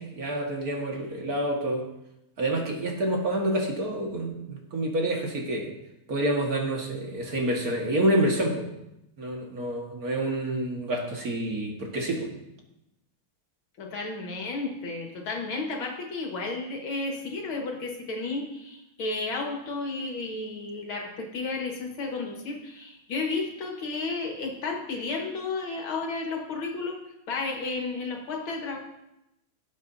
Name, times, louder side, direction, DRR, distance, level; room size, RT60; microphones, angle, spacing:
voice 1, 0.0-1.8 2.4-5.7 6.1-8.7 9.2-12.3, right 1 dB, 50° right, 0 dB, 2.1 m, -28 dB
voice 2, 13.8-27.0 27.3-28.8, left 3 dB, 85° left, 1 dB, 2.5 m, -32 dB
18.5 x 8.2 x 2.8 m, 0.86 s
omnidirectional pair, 2.2 m